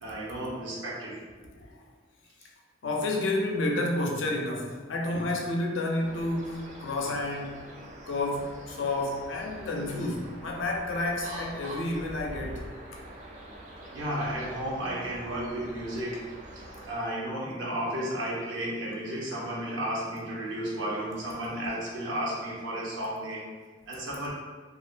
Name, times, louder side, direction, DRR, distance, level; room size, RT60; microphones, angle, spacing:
voice 1, 0.0-1.2 13.9-23.5 23.9-24.3, right 1 dB, 75° right, -5 dB, 0.7 m, -33 dB
voice 2, 2.8-7.6 8.1-12.7 12.9-13.0, left 2 dB, 75° left, 0 dB, 0.4 m, -30 dB
sound 1, 6.0-17.0, right 1 dB, 40° right, 0.3 m, -44 dB
2.4 x 2.1 x 2.4 m, 1.4 s
head